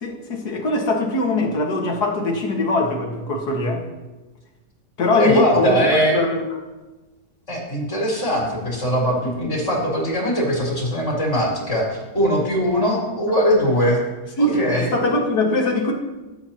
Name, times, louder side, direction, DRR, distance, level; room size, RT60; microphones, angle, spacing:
voice 1, 0.0-3.8 5.0-5.8 6.1-6.4 9.1-9.2 14.4-15.9, left 2 dB, 65° left, 1 dB, 2.3 m, -21 dB
voice 2, 5.2-6.2 7.5-11.9 12.1-14.0 14.4-14.9, equal, 40° left, -3 dB, 4.4 m, -20 dB
21.0 x 12.0 x 3.0 m, 1.2 s
omnidirectional pair, 1.8 m